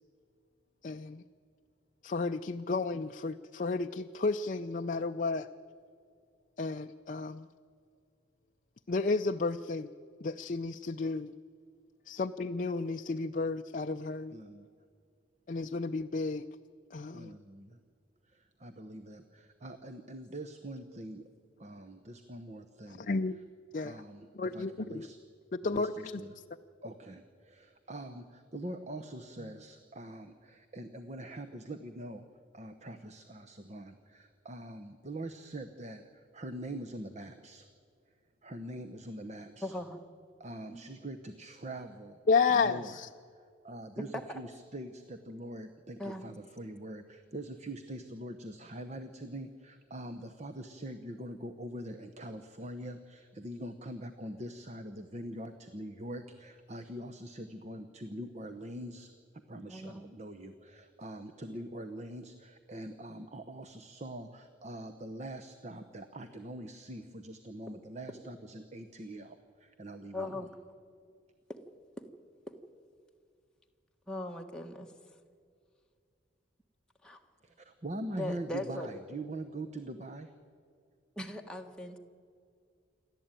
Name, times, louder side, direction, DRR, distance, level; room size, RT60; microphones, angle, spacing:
voice 1, 0.8-1.2 2.0-5.5 6.6-7.5 8.9-9.9 10.2-11.3 12.1-14.3 15.5-16.4 16.9-17.3 23.0-23.4 23.7-24.0 24.3-25.1 25.5-26.2 42.3-43.1, left 4 dB, 45° left, 6 dB, 0.5 m, -32 dB
voice 2, 14.3-14.7 17.1-17.8 18.2-21.3 21.6-23.1 23.8-25.2 25.6-26.4 26.8-32.3 32.5-37.7 38.4-39.8 40.4-42.2 42.5-43.0 43.4-59.1 59.5-70.5 77.4-80.3, right 1 dB, 35° right, 8 dB, 0.9 m, -43 dB
voice 3, 39.6-40.0 40.7-40.8 44.3-44.4 46.0-46.2 59.7-60.1 70.1-70.5 71.5-71.6 72.0-72.1 72.5-72.6 74.1-74.9 77.0-77.2 78.1-78.9 81.2-82.0, left 1 dB, 5° left, 1 dB, 1.4 m, -39 dB
28.0 x 12.0 x 9.0 m, 2.3 s
head